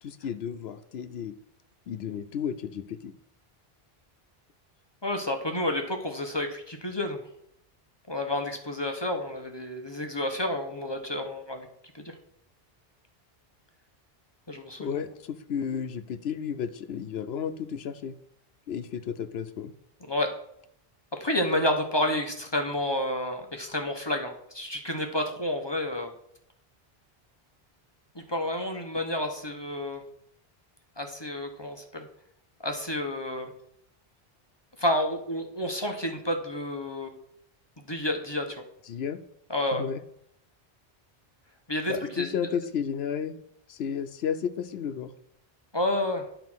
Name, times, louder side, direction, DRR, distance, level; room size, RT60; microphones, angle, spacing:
voice 1, 0.0-1.3 1.9-3.1 14.8-18.1 18.7-19.7 38.9-39.2 39.8-40.0 41.9-43.3 43.7-45.1, left 7 dB, 90° left, 10 dB, 0.9 m, -32 dB
voice 2, 5.0-7.2 8.1-11.7 11.9-12.1 14.5-14.9 20.1-20.3 21.1-26.1 28.1-30.0 31.0-32.1 32.6-33.5 34.8-37.1 37.9-38.6 39.5-39.8 41.7-42.3 45.7-46.3, left 1 dB, 25° left, 4 dB, 0.9 m, -30 dB
9.3 x 4.4 x 6.1 m, 0.73 s
omnidirectional pair, 1.0 m